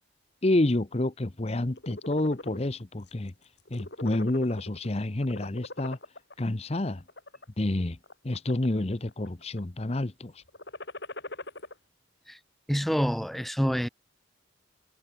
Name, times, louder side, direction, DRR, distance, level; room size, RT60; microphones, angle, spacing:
voice 1, 0.4-3.3 3.7-6.0 6.4-7.0 7.6-8.0 8.2-10.4, left 1 dB, 30° left, 0.8 m, -28 dB
sound 1, 1.6-2.6 3.1-3.3 3.6-4.9 5.2-6.3 7.0-7.4 8.0-8.8 9.1-9.6 10.5-11.7, left 2 dB, 55° left, 5.8 m, -41 dB
voice 2, 12.7-13.9, equal, ahead, 0.7 m, -27 dB
head